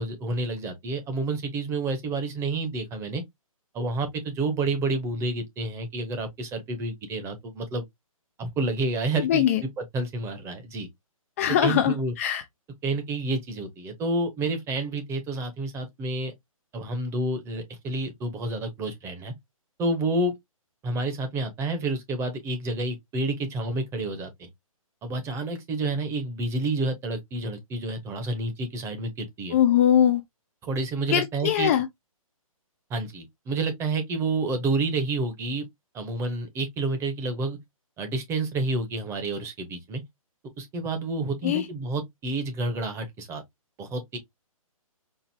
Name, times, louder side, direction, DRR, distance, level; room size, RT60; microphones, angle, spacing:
voice 1, 0.0-3.2 3.7-7.8 8.4-9.4 9.9-10.9 11.6-12.1 12.8-16.3 16.7-19.3 19.8-20.3 20.8-24.5 25.0-29.6 30.6-31.7 32.9-35.7 35.9-37.6 38.0-40.0 40.6-43.4 43.8-44.2, right 2 dB, 15° right, 0.9 m, -29 dB
voice 2, 9.2-9.6 11.4-12.4 29.5-30.2 31.1-31.9 41.4-41.7, left 10 dB, 25° left, 0.4 m, -22 dB
4.6 x 2.7 x 2.7 m
figure-of-eight pair, 135°, 18 cm